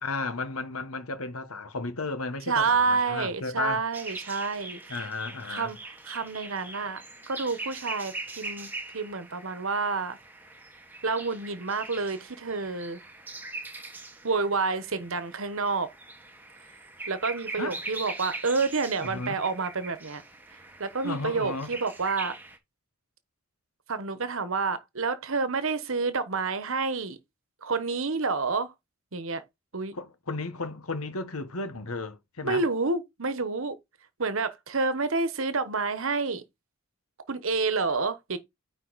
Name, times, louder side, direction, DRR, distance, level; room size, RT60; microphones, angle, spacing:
voice 1, 0.0-3.8 4.9-5.8 17.6-17.8 19.0-19.4 21.0-21.7 29.9-32.6, left 3 dB, 90° left, 1.3 m, -34 dB
voice 2, 2.5-4.8 5.5-10.2 11.0-13.0 14.2-15.9 17.1-20.2 20.8-22.4 23.9-27.2 27.6-28.7 29.1-29.4 29.7-29.9 32.4-33.8 34.2-36.4 37.3-38.4, right 4 dB, 70° right, 1.1 m, -29 dB
sound 1, 3.9-22.6, right 2 dB, 10° right, 1.4 m, -42 dB
9.4 x 4.1 x 4.1 m
head